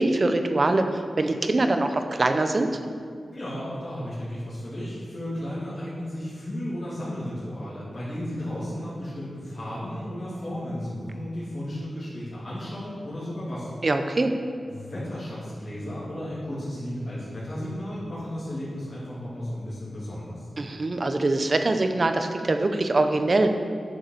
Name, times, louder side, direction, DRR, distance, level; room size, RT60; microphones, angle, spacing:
voice 1, 0.0-2.7 13.8-14.3 20.6-23.5, right 2 dB, 40° right, 7 dB, 0.8 m, -23 dB
voice 2, 3.3-13.9 14.7-20.5, equal, 40° left, -11 dB, 2.9 m, -34 dB
9.6 x 6.5 x 6.7 m, 2.2 s
wide cardioid pair, 130°, 0 cm